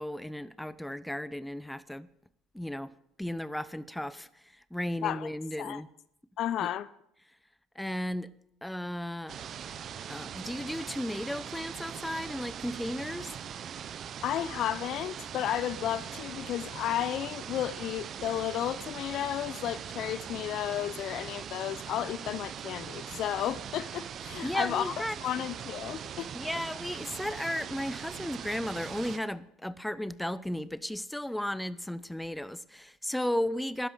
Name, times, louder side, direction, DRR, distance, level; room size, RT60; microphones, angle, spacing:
voice 1, 0.0-2.1 2.5-2.9 3.2-4.3 4.7-5.9 6.6-6.7 7.8-8.3 8.6-9.4 10.1-13.4 24.4-25.2 26.3-33.9, left 1 dB, 5° left, 0.7 m, -34 dB
voice 2, 6.4-6.9 14.2-24.9 25.2-26.3, left 11 dB, 55° left, 0.6 m, -33 dB
sound 1, 9.3-29.2, right 8 dB, 50° right, 0.9 m, -41 dB
12.0 x 10.5 x 6.6 m
hypercardioid pair, 70°, 0 cm